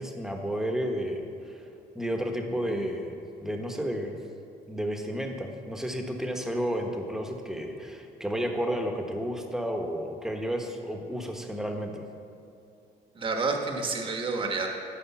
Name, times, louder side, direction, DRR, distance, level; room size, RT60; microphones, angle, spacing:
voice 1, 0.0-1.6 1.9-4.2 4.7-12.0, equal, 5° right, 3 dB, 1.0 m, -32 dB
voice 2, 13.1-14.7, right 4 dB, 30° right, 2 dB, 1.1 m, -29 dB
12.5 x 5.0 x 5.8 m, 2.7 s
cardioid pair, 110°, 17 cm